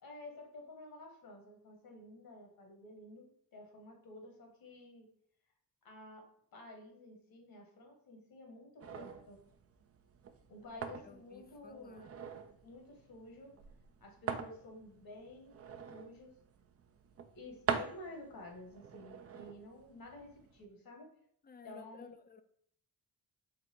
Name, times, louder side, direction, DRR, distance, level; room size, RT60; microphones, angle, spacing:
voice 1, 0.0-5.1 5.8-9.4 10.5-12.1 12.6-13.5 14.0-15.6 15.9-16.4 17.3-21.1 21.6-22.1, left 1 dB, 70° left, 1.3 m, -52 dB
sound 1, 8.8-20.6, right 7 dB, 40° right, 0.5 m, -44 dB
voice 2, 10.8-12.2 21.4-22.4, left 5 dB, 25° left, 0.4 m, -56 dB
4.0 x 2.1 x 4.3 m
cardioid pair, 60°, 37 cm